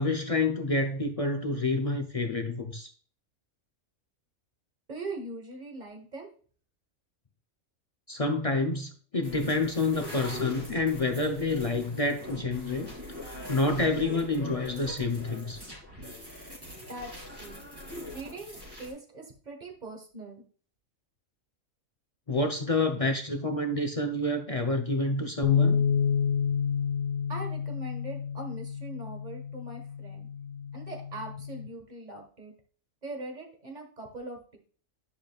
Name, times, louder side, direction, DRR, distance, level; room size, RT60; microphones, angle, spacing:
voice 1, 0.0-2.9 8.1-12.9 13.2-15.6 22.3-25.8, left 2 dB, 40° left, 3 dB, 0.5 m, -28 dB
voice 2, 4.9-6.3 16.9-17.6 18.1-20.4 27.3-30.3 30.7-32.5 33.0-34.6, right 2 dB, 35° right, 3 dB, 1.6 m, -41 dB
sound 1, 9.2-18.9, left 1 dB, 15° right, 3.1 m, -42 dB
sound 2, 25.4-31.7, left 7 dB, 75° left, 1.0 m, -29 dB
10.0 x 5.1 x 2.3 m, 0.42 s
omnidirectional pair, 1.5 m